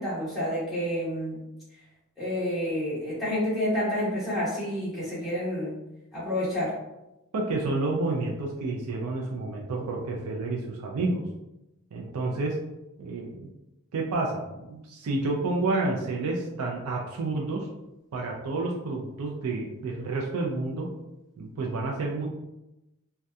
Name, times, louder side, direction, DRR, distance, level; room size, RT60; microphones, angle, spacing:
voice 1, 0.0-1.4 2.2-5.8 6.1-6.7, left 1 dB, ahead, -10 dB, 1.1 m, -29 dB
voice 2, 7.3-11.2 11.9-12.6 13.0-13.5 13.9-17.7 18.1-20.9 21.4-22.3, right 3 dB, 85° right, -1 dB, 0.4 m, -30 dB
2.6 x 2.2 x 2.2 m, 0.94 s
head